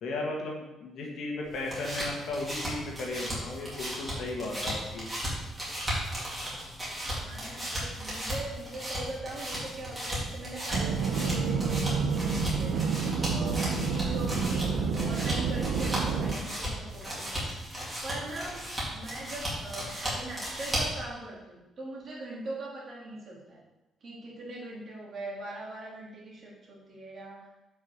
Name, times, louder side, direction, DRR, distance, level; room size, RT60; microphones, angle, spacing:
voice 1, 0.0-5.1, left 2 dB, 60° left, 0 dB, 1.6 m, -35 dB
sound 1, 1.4-21.0, equal, 10° right, 2.3 m, -36 dB
voice 2, 7.2-12.8 13.3-17.4 18.0-23.6 24.0-27.5, right 2 dB, 35° right, -3 dB, 1.9 m, -41 dB
sound 2, 10.7-16.3, right 5 dB, 70° right, 0.7 m, -29 dB
7.0 x 5.3 x 5.1 m, 1.0 s
cardioid pair, 175°, 0 cm